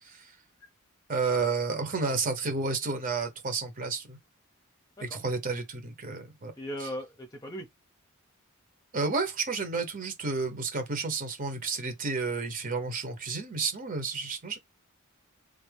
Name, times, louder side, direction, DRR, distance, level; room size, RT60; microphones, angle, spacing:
voice 1, 1.1-4.2 5.0-6.5 6.8-6.9 8.9-14.6, right 4 dB, 40° right, 1.2 m, -31 dB
voice 2, 6.6-7.7, equal, 15° left, 0.9 m, -37 dB
3.4 x 2.9 x 3.5 m
head